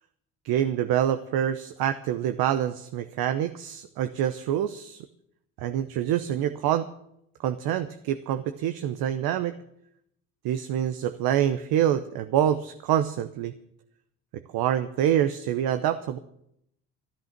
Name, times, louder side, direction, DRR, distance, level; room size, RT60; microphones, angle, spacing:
voice 1, 0.4-5.1 5.6-6.9 7.4-9.6 10.4-13.5 14.3-16.2, right 10 dB, 65° right, 10 dB, 0.9 m, -26 dB
13.5 x 12.5 x 6.0 m, 0.73 s
supercardioid pair, 75°, 39 cm